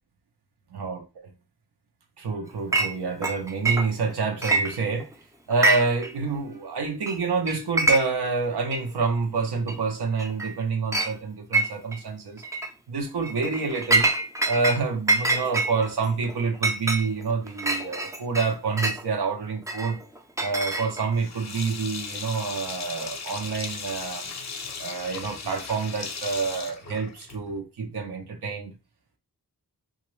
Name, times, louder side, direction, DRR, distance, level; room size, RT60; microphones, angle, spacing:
voice 1, 0.7-1.3 2.2-5.1 5.5-12.4 12.9-14.1 14.4-20.0 20.4-24.3 24.8-28.7, right 4 dB, 80° right, 0.8 m, -28 dB
Chink clink, 2.7-2.9 3.2-4.1 4.4-5.1 5.5-6.1 6.3-6.4 7.1-7.2 7.5-8.3 8.7-8.8 9.7-9.8 10.2-10.5 10.9-11.1 11.5-12.0 12.4-12.7 13.2-14.8 15.1-19.0 19.7-21.2, right 2 dB, 10° right, 0.4 m, -25 dB
Sink (filling or washing), 21.2-27.6, left 5 dB, 45° left, 0.6 m, -37 dB
2.9 x 2.5 x 3.0 m
wide cardioid pair, 95°, 39 cm